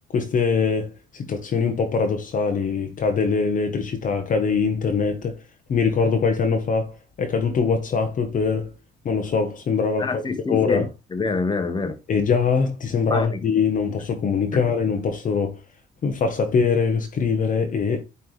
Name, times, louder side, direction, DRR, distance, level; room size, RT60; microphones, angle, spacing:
voice 1, 0.1-5.3 5.7-8.7 9.0-10.2 10.5-10.9 12.1-15.6 16.0-18.0, left 5 dB, 45° left, 1.0 m, -22 dB
voice 2, 10.0-12.0 13.1-13.4 14.5-14.6, left 4 dB, 25° left, 1.2 m, -26 dB
9.7 x 3.4 x 3.2 m
cardioid pair, 90°, 19 cm